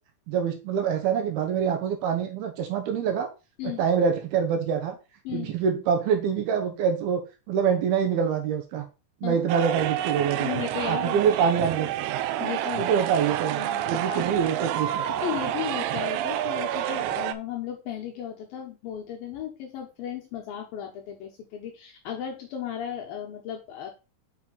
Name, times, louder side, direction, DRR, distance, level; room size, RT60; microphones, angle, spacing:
voice 1, 0.3-3.3 3.6-5.0 5.3-7.2 7.5-8.9 9.2-10.5 10.9-12.2 12.8-15.1, right 7 dB, 75° right, 6 dB, 2.5 m, -25 dB
sound 1, 9.5-17.3, right 12 dB, 90° right, 2.9 m, -29 dB
voice 2, 10.4-11.5 12.2-13.1 13.6-14.3 15.1-23.9, left 9 dB, 75° left, 1 dB, 2.3 m, -35 dB
6.1 x 6.1 x 4.0 m, 0.30 s
omnidirectional pair, 5.0 m